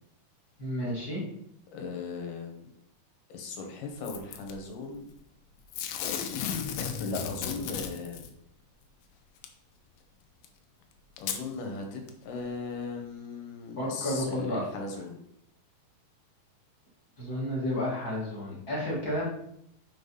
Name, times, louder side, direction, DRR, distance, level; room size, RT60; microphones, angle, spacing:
voice 1, 0.6-1.2 13.8-14.6 17.2-19.3, left 1 dB, 35° left, -6 dB, 1.9 m, -31 dB
voice 2, 1.7-2.7 3.3-5.1 6.8-8.3 11.2-15.2, left 4 dB, 70° left, 3 dB, 2.7 m, -38 dB
Packing tape duct tape / Tearing, 4.0-4.5 5.7-8.3 9.4-9.5 10.4-10.5 11.2-11.4 12.1-12.2, left 8 dB, 85° left, 2.4 m, -34 dB
6.2 x 4.0 x 5.4 m, 0.73 s
omnidirectional pair, 4.1 m